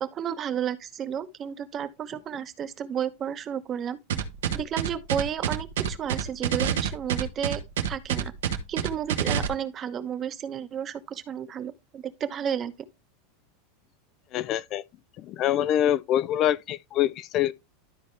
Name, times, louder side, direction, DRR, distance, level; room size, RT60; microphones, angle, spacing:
voice 1, 0.0-4.0 4.5-7.6 7.9-8.3 8.7-12.7, right 8 dB, 35° right, 1.0 m, -32 dB
sound 1, 4.1-9.5, right 8 dB, 85° right, 1.2 m, -27 dB
voice 2, 14.3-14.8 15.2-17.5, left 11 dB, 45° left, 0.4 m, -25 dB
12.5 x 4.3 x 3.3 m
supercardioid pair, 120°, 0 cm